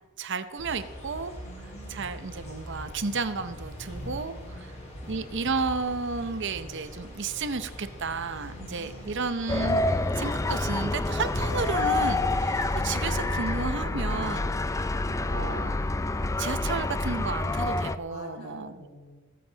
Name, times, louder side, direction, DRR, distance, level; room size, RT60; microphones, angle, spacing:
voice 1, 0.2-1.3 1.9-4.3 5.1-9.8 10.2-14.9 15.3-15.7 16.4-18.8, right 4 dB, 60° right, 11 dB, 0.8 m, -32 dB
sound 1, 0.6-13.7, equal, 35° left, 3.3 m, -42 dB
voice 2, 1.4-2.3 3.8-5.0 8.3-9.3 18.1-19.2, equal, 75° left, 0 dB, 4.1 m, -48 dB
sound 2, 9.5-18.0, left 2 dB, 15° left, 0.4 m, -27 dB
23.0 x 7.8 x 4.0 m, 1.2 s
head